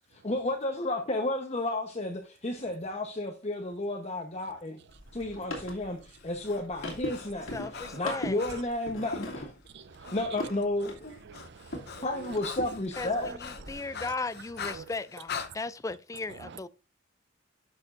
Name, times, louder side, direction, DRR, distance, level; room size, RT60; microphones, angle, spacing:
voice 1, 0.1-4.8 5.1-9.5 10.1-11.1 12.0-13.3, left 1 dB, 35° left, 1.0 m, -32 dB
sound 1, 4.9-11.9 12.2-13.7, left 1 dB, 85° left, 2.6 m, -40 dB
Breathing, 6.2-9.4 10.0-10.3 10.6-15.5, left 6 dB, 55° left, 0.8 m, -43 dB
voice 2, 7.5-8.4 13.0-16.7, left 3 dB, 15° left, 0.4 m, -36 dB
voice 3, 9.7-10.2 11.3-12.1 13.2-13.4 13.7-13.9 14.7-14.8 16.4-16.6, right 5 dB, 60° right, 0.5 m, -46 dB
11.0 x 6.9 x 2.6 m
head